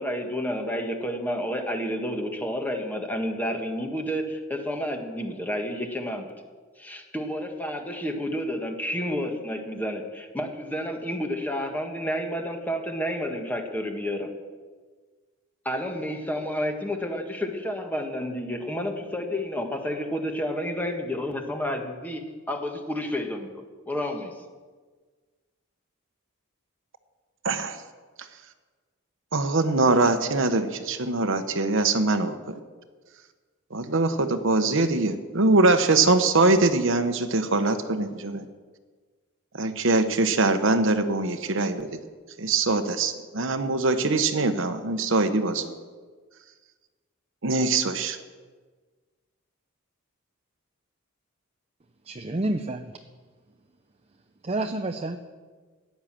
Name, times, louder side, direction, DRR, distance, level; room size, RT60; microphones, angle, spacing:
voice 1, 0.0-6.3 6.8-14.3 15.6-23.5 23.9-24.3, equal, 10° left, 3 dB, 1.6 m, -30 dB
voice 2, 27.4-27.8 29.3-32.6 33.7-38.4 39.6-42.0 42.4-45.8 47.4-48.2, right 3 dB, 65° right, 9 dB, 1.1 m, -23 dB
voice 3, 52.1-52.9 54.4-55.2, right 2 dB, 30° right, 6 dB, 0.6 m, -29 dB
15.0 x 10.5 x 7.6 m, 1.4 s
head